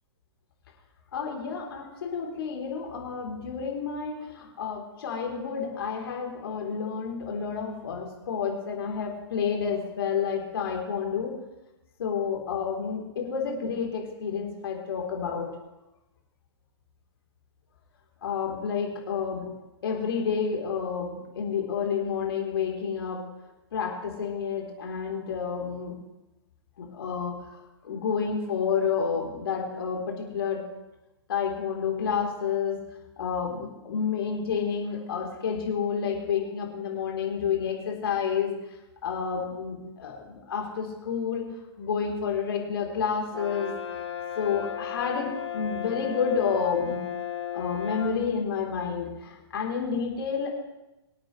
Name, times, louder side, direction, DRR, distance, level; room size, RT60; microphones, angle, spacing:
voice 1, 1.1-11.3 12.0-15.5 18.2-19.5 19.8-23.2 23.7-26.0 26.8-27.3 27.8-30.6 31.3-32.8 33.2-38.5 39.0-41.4 41.8-43.7 44.4-47.0 47.5-50.5, left 6 dB, 60° left, 0 dB, 3.6 m, -30 dB
Brass instrument, 43.3-48.2, left 9 dB, 75° left, 1.8 m, -35 dB
24.5 x 8.9 x 3.2 m, 0.99 s
figure-of-eight pair, 115°, 14 cm